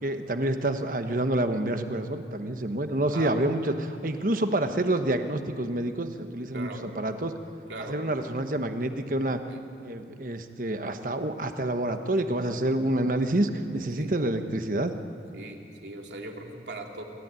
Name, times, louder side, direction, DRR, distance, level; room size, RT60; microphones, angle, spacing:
voice 1, 0.0-7.3 7.9-9.4 9.8-15.0, right 1 dB, 50° right, 7 dB, 1.2 m, -28 dB
voice 2, 15.3-17.0, right 2 dB, 80° right, 1 dB, 2.7 m, -39 dB
27.5 x 14.0 x 9.1 m, 2.5 s
head